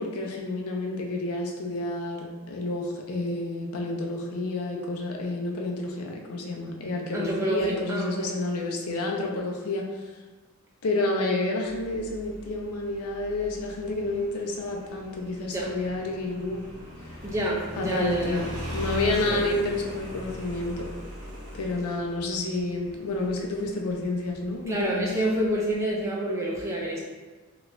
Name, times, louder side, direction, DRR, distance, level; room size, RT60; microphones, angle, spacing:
voice 1, 0.0-9.9 10.8-16.6 17.0-17.2 17.8-20.9 21.5-25.1, left 2 dB, 90° left, 0 dB, 0.5 m, -30 dB
voice 2, 7.1-8.3 15.4-15.7 17.2-18.5 19.3-19.5 24.7-27.0, right 1 dB, 15° right, -4 dB, 0.5 m, -28 dB
Motorcycle, 11.7-26.0, equal, 90° right, 0.9 m, -40 dB
2.9 x 2.4 x 3.2 m, 1.3 s
head